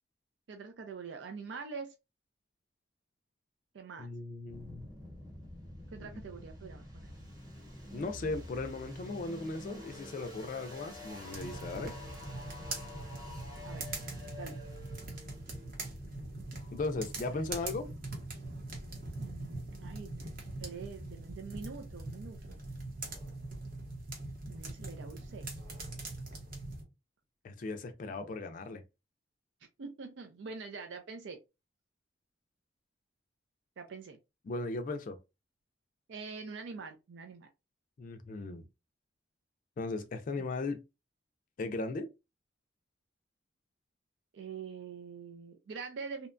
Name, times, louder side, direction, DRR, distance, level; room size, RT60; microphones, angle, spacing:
voice 1, 0.5-1.9 3.7-4.1 5.9-7.1 13.6-13.9 14.4-14.6 17.3-17.4 19.2-20.3 20.6-22.6 24.5-25.5 29.8-31.4 33.8-34.2 36.1-37.5 40.4-40.5 44.3-46.3, right 5 dB, 85° right, 0.4 m, -44 dB
voice 2, 4.0-4.9 6.1-6.2 7.9-11.9 16.7-17.9 27.4-28.8 34.4-35.2 38.0-38.6 39.8-40.8 41.6-42.1, left 3 dB, 45° left, 0.3 m, -37 dB
sound 1, 4.5-17.3, left 1 dB, 20° right, 0.9 m, -48 dB
sound 2, 11.3-26.8, right 2 dB, 55° right, 0.8 m, -42 dB
sound 3, 23.0-23.9 25.6-26.5, left 1 dB, 70° right, 1.1 m, -61 dB
2.7 x 2.2 x 2.4 m
head